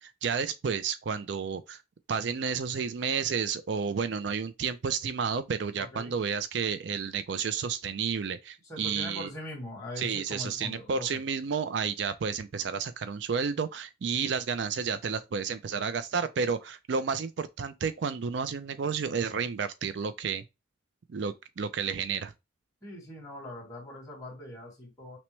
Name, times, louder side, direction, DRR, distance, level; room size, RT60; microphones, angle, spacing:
voice 1, 0.0-1.8 2.1-9.3 10.0-20.4 21.1-22.3, right 6 dB, 70° right, 0.4 m, -31 dB
voice 2, 5.7-6.2 8.7-11.2 22.8-25.2, left 1 dB, 15° left, 2.0 m, -41 dB
5.9 x 2.1 x 3.1 m
head